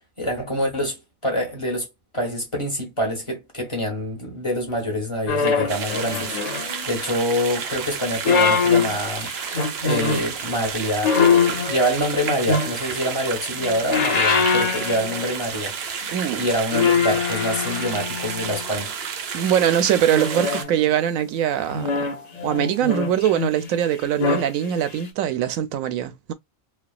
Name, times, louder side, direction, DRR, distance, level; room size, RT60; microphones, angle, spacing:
voice 1, 0.2-1.9 2.1-9.3 9.8-15.7 16.3-18.9, equal, 25° left, 1.0 m, -26 dB
sound 1, 5.3-7.0 8.0-10.3 11.0-13.1 13.5-15.6 15.9-16.1 16.7-18.8 19.6-20.9 21.7-23.7 24.0-24.5 25.0-25.1, left 5 dB, 40° left, 0.6 m, -23 dB
sound 2, 5.7-20.6, right 7 dB, 60° right, 0.7 m, -31 dB
voice 2, 16.1-16.5 19.3-21.9 22.4-26.3, right 10 dB, 85° right, 1.0 m, -22 dB
3.3 x 2.1 x 2.3 m
omnidirectional pair, 1.4 m